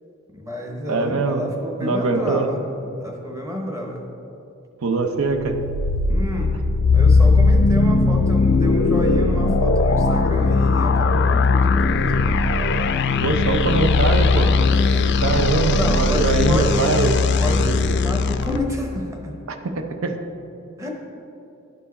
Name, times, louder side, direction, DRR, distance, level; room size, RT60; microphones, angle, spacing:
voice 1, 0.3-4.0 6.1-6.6 6.9-12.4 14.9-17.0 17.4-19.3 20.8-20.9, equal, 15° right, 1 dB, 0.8 m, -30 dB
voice 2, 0.9-1.4 1.8-2.5 4.8-5.6 13.2-14.6 15.2-17.2 19.5-20.2, right 3 dB, 85° right, 7 dB, 0.6 m, -22 dB
sound 1, 5.3-18.6, left 3 dB, 55° left, 0.3 m, -18 dB
11.0 x 4.5 x 4.1 m, 2.8 s
head